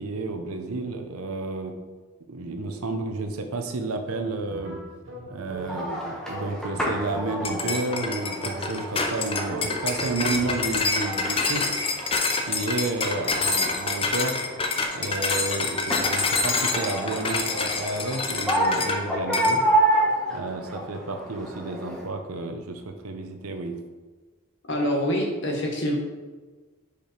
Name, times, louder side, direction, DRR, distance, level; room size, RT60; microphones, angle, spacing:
voice 1, 0.0-1.7 2.3-4.8 5.2-11.8 12.5-14.4 14.9-19.6 20.3-23.7, right 3 dB, 80° right, 5 dB, 0.7 m, -31 dB
sound 1, 4.1-9.0 9.4-11.0, right 1 dB, 55° right, 1.0 m, -40 dB
sound 2, 5.6-22.0, right 1 dB, 5° left, 1.1 m, -30 dB
sound 3, 7.4-19.0 19.3-19.6, left 4 dB, 25° left, 0.5 m, -27 dB
voice 2, 24.7-26.0, equal, 55° left, 0 dB, 1.3 m, -25 dB
5.1 x 5.1 x 4.5 m, 1.3 s
head